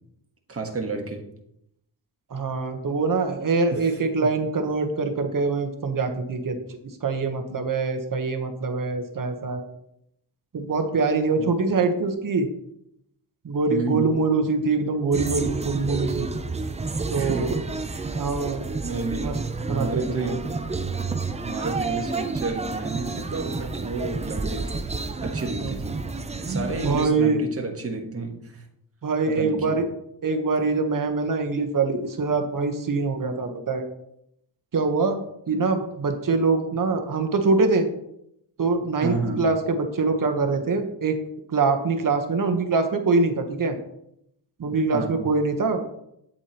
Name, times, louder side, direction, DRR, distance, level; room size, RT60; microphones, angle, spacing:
voice 1, 0.5-1.2 3.7-3.9 11.4-11.5 13.7-14.1 17.1-17.6 17.9-18.2 18.8-19.4 19.7-20.5 21.3-24.9 25.2-26.0 26.5-28.6 29.3-29.8 39.0-39.5 44.9-45.2, right 3 dB, 35° right, 2 dB, 1.4 m, -31 dB
voice 2, 2.3-6.6 7.0-9.6 10.5-12.5 13.4-16.3 17.1-17.6 18.2-18.6 19.1-19.4 19.7-20.4 25.6-26.0 26.5-27.4 29.0-29.8 30.2-33.9 34.7-35.2 35.5-37.9 38.6-41.2 41.5-43.8 44.6-45.8, right 4 dB, 50° right, 5 dB, 1.2 m, -24 dB
sound 1, 15.1-27.1, right 3 dB, 15° right, 0.5 m, -30 dB
8.6 x 8.0 x 3.0 m, 0.77 s
wide cardioid pair, 115°, 43 cm